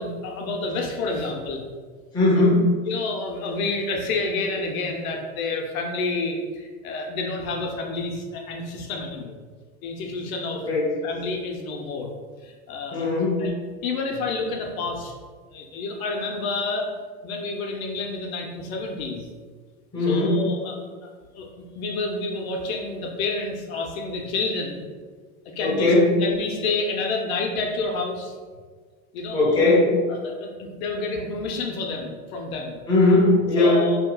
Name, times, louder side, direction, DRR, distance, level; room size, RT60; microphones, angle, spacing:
voice 1, 0.0-1.7 2.4-2.5 2.9-9.4 9.8-10.6 11.0-12.1 12.4-13.1 13.4-13.5 13.8-15.1 15.5-16.9 17.2-19.3 20.1-21.1 21.3-21.5 21.7-24.8 25.6-25.9 26.2-28.3 29.1-29.7 30.1-32.8 33.6-34.0, left 3 dB, 70° left, 2 dB, 0.8 m, -29 dB
voice 2, 2.1-2.7 10.6-10.9 12.9-13.4 19.9-20.4 25.6-26.1 29.3-29.9 32.9-33.8, left 2 dB, 10° left, -6 dB, 0.7 m, -18 dB
5.3 x 2.9 x 2.3 m, 1.5 s
supercardioid pair, 145°, 43 cm